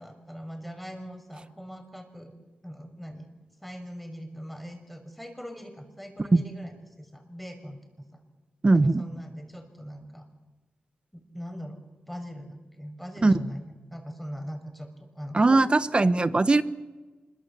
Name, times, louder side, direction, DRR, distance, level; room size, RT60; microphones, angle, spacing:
voice 1, 0.0-2.3 2.6-3.4 3.6-7.8 8.1-8.2 8.7-10.2 11.1-11.8 12.1-15.6, equal, 5° left, 6 dB, 6.3 m, -41 dB
voice 2, 8.6-9.0 13.2-13.3 15.3-16.6, right 3 dB, 35° right, 13 dB, 1.2 m, -20 dB
26.0 x 23.0 x 7.7 m, 1.2 s
cardioid pair, 65°, 3 cm